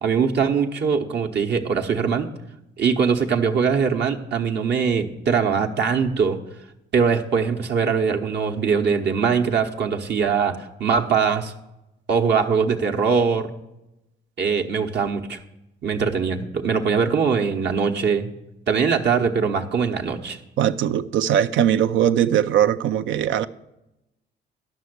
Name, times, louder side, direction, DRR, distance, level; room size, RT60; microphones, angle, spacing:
voice 1, 0.0-2.3 2.8-6.4 6.9-11.5 12.1-13.5 14.4-15.4 15.8-18.3 18.7-20.4, right 6 dB, 60° right, 1.0 m, -22 dB
voice 2, 20.6-23.5, right 10 dB, 75° right, 0.5 m, -20 dB
11.0 x 5.9 x 7.9 m
cardioid pair, 90°, 20 cm